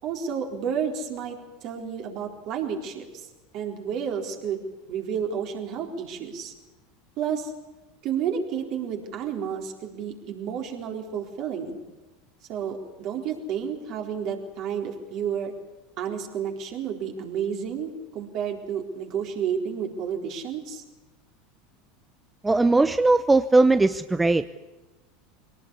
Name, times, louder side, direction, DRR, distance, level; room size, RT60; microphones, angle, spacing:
voice 1, 0.0-1.4 1.6-3.3 3.5-6.5 7.2-7.5 8.0-11.8 12.5-15.5 16.0-20.8, right 7 dB, 50° right, 2 dB, 4.1 m, -31 dB
voice 2, 22.4-24.5, right 2 dB, 15° right, 12 dB, 0.7 m, -19 dB
23.0 x 18.0 x 8.5 m, 1.1 s
hypercardioid pair, 85°, 0 cm